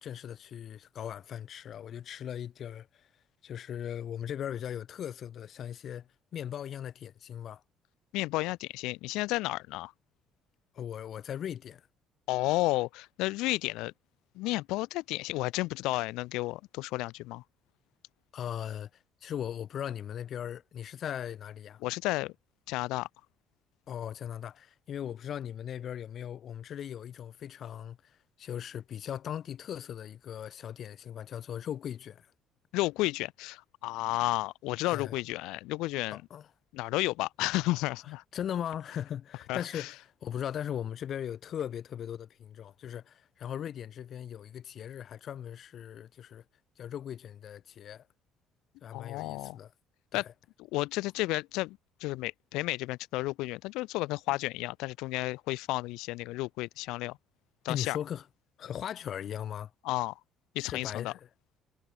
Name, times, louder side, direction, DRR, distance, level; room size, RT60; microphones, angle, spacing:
voice 1, 0.0-3.1 3.4-7.6 10.7-11.9 18.3-21.8 23.9-32.3 34.8-35.1 36.1-36.5 38.3-46.4 46.8-48.1 48.8-49.7 50.1-50.3 57.7-58.2 58.6-59.7 60.6-61.3, left 9 dB, 55° left, 3.5 m, -39 dB
voice 2, 8.1-9.9 12.3-13.9 14.3-17.4 21.8-22.3 22.7-23.1 32.7-36.2 36.7-38.2 39.5-39.9 48.9-49.6 50.1-50.2 50.7-57.2 57.6-58.0 59.8-60.2 60.5-61.1, left 20 dB, 90° left, 0.9 m, -32 dB
cardioid pair, 105°, 0 cm